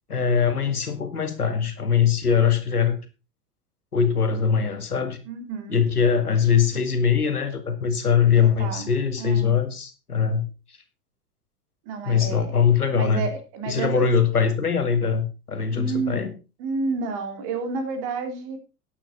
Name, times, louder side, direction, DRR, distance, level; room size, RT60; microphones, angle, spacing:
voice 1, 0.1-3.0 3.9-5.2 5.7-10.5 12.0-13.3 13.7-16.3, left 6 dB, 80° left, 7 dB, 2.1 m, -22 dB
voice 2, 5.3-5.8 8.3-8.9 9.2-9.5 11.8-12.5 12.9-14.1 15.7-16.2 16.6-18.6, right 4 dB, 50° right, 6 dB, 3.3 m, -30 dB
11.5 x 10.0 x 4.0 m, 0.30 s
figure-of-eight pair, 85°, 45 cm